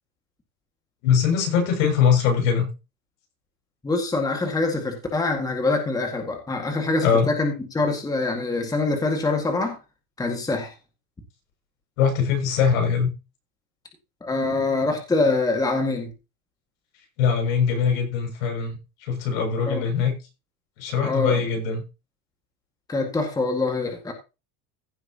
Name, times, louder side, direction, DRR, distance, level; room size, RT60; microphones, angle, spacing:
voice 1, 1.0-2.7 7.0-7.3 12.0-13.1 17.2-20.1 20.8-21.8, left 6 dB, 70° left, 3 dB, 6.6 m, -22 dB
voice 2, 3.8-9.8 10.2-10.7 14.2-16.1 19.7-19.8 21.0-21.4 22.9-24.1, left 3 dB, 10° left, 3 dB, 1.9 m, -24 dB
16.0 x 7.7 x 2.9 m, 0.28 s
supercardioid pair, 150°, 41 cm